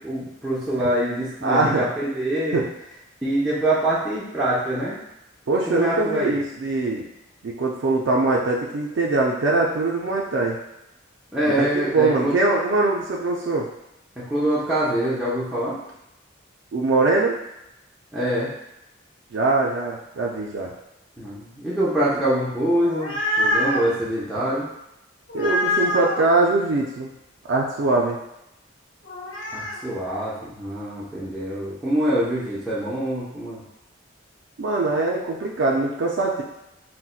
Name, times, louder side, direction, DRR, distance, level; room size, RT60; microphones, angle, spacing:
voice 1, 0.0-2.6 3.2-5.0 5.7-6.4 11.3-12.4 14.2-15.8 18.1-18.5 21.2-24.7 29.5-33.6, right 1 dB, 5° right, -10 dB, 0.5 m, -24 dB
voice 2, 1.4-1.8 2.5-2.6 5.5-7.0 7.4-10.6 11.4-13.7 16.7-17.4 19.3-20.7 25.3-27.1 27.5-28.2 34.6-36.4, right 3 dB, 60° right, -2 dB, 0.4 m, -22 dB
sound 1, 22.8-23.9 25.3-26.3 29.1-29.8, left 1 dB, 75° left, 0.7 m, -25 dB
3.9 x 2.1 x 2.4 m, 0.87 s
head